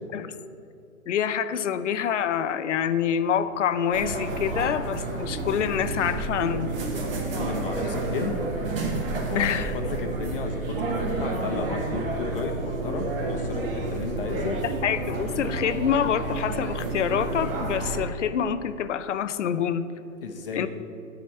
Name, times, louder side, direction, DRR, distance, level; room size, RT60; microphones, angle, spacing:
voice 1, 1.1-6.7 9.3-9.8 14.8-19.8 20.6-20.7, left 8 dB, 60° left, 12 dB, 0.7 m, -26 dB
sound 1, 3.9-18.1, right 3 dB, 40° right, 1.8 m, -30 dB
voice 2, 7.3-8.4 9.3-14.6 20.2-20.7, left 5 dB, 40° left, 3 dB, 1.1 m, -33 dB
10.5 x 5.1 x 7.8 m, 2.7 s
hypercardioid pair, 165°, 41 cm